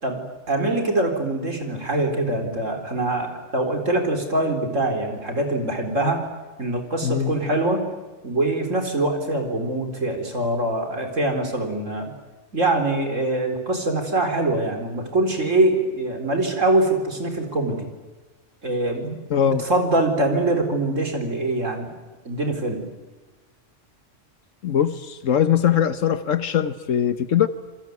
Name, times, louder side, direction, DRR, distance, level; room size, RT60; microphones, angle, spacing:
voice 1, 0.0-6.2 6.6-7.9 8.2-12.1 12.5-17.9 18.6-21.9 22.2-22.8, right 2 dB, 80° right, 4 dB, 4.6 m, -23 dB
voice 2, 7.0-7.3 19.3-19.6 24.6-27.5, left 9 dB, 85° left, 11 dB, 1.4 m, -21 dB
27.5 x 22.5 x 9.5 m, 1.3 s
omnidirectional pair, 1.3 m